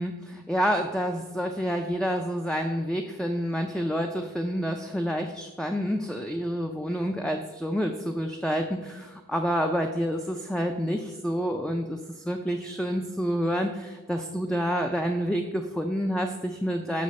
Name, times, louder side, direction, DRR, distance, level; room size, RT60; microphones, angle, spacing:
voice 1, 0.0-17.0, equal, 5° left, 4 dB, 0.4 m, -28 dB
8.4 x 4.9 x 6.4 m, 1.2 s
head